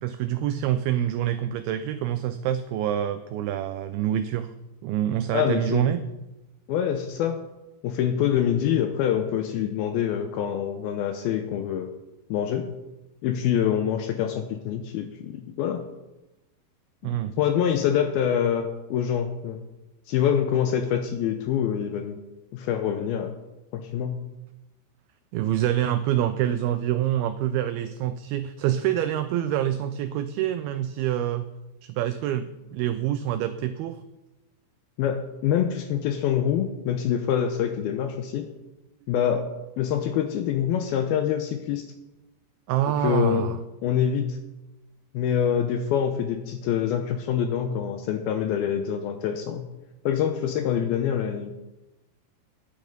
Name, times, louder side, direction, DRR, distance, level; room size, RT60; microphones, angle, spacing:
voice 1, 0.0-4.5 4.8-6.0 17.0-17.4 25.3-31.5 31.8-34.0 42.7-43.6, right 11 dB, 90° right, 11 dB, 2.1 m, -26 dB
voice 2, 5.3-5.9 6.7-7.4 7.8-11.9 12.3-12.7 13.2-15.8 17.0-19.6 20.1-22.2 22.5-23.3 23.7-24.2 35.0-38.5 39.1-41.8 43.0-43.5 43.8-44.4 45.1-49.7 50.1-51.5, left 9 dB, 85° left, 7 dB, 2.2 m, -25 dB
10.5 x 9.8 x 5.3 m, 1.0 s
omnidirectional pair, 4.9 m